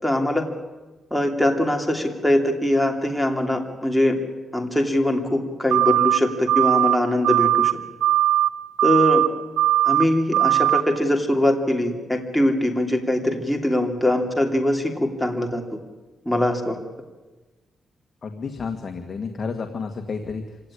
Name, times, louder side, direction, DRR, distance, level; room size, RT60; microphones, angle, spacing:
voice 1, 0.0-0.4 1.1-4.2 4.5-7.7 8.8-9.2 9.8-15.6 16.3-16.8, left 1 dB, ahead, 2 dB, 2.9 m, -22 dB
sound 1, 5.7-6.2 6.5-7.0 7.2-7.7 8.0-8.5 8.8-9.3 9.6-10.0 10.3-10.8, right 13 dB, 80° right, 0.7 m, -19 dB
voice 2, 18.2-20.7, left 5 dB, 40° left, 5 dB, 1.9 m, -31 dB
26.0 x 17.5 x 10.0 m, 1.2 s
cardioid pair, 125°, 0 cm